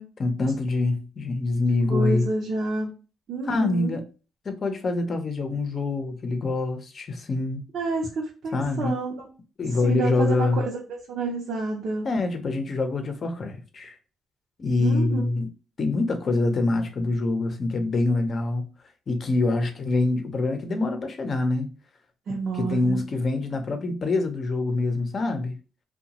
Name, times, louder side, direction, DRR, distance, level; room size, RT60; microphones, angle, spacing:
voice 1, 0.2-2.3 3.4-4.0 4.4-7.6 8.5-9.0 9.6-10.6 12.0-14.0 14.6-15.5 15.8-18.7 19.1-21.7 22.3-25.5, left 3 dB, 45° left, 0.6 m, -25 dB
voice 2, 1.9-2.9 3.3-4.0 7.7-9.1 9.8-10.5 10.9-12.1 14.8-15.2 22.3-23.1, right 3 dB, 65° right, 0.7 m, -29 dB
2.7 x 2.2 x 2.8 m
cardioid pair, 90°, 0 cm